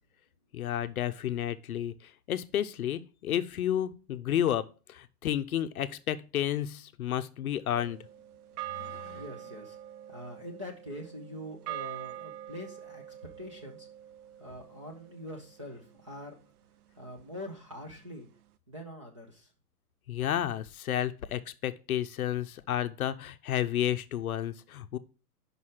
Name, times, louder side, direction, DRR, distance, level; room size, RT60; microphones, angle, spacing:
voice 1, 0.5-8.0 8.7-9.2 20.1-25.0, left 11 dB, 60° left, 0.7 m, -31 dB
sound 1, 7.7-16.2, right 13 dB, 70° right, 0.5 m, -44 dB
voice 2, 9.1-9.8 10.1-13.0 13.4-13.9 14.4-16.4 17.0-18.3 18.7-19.5, left 1 dB, 20° right, 0.5 m, -44 dB
5.3 x 4.9 x 5.7 m
hypercardioid pair, 170°, 48 cm